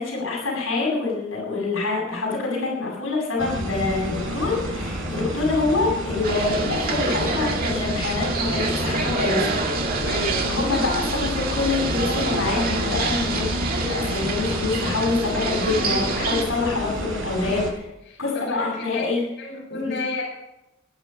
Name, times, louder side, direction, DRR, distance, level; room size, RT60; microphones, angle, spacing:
voice 1, 0.0-9.6 10.0-13.4 13.7-17.7 18.2-19.2 19.8-19.9, left 3 dB, 80° left, -2 dB, 7.5 m, -26 dB
sound 1, 3.4-17.7, equal, 75° right, 4.7 m, -29 dB
sound 2, 6.2-16.4, right 3 dB, 45° right, 2.2 m, -27 dB
voice 2, 10.0-10.5 17.5-17.7 18.1-19.1 19.4-20.2, left 2 dB, 55° left, -5 dB, 6.4 m, -31 dB
19.5 x 10.5 x 5.7 m, 0.91 s
head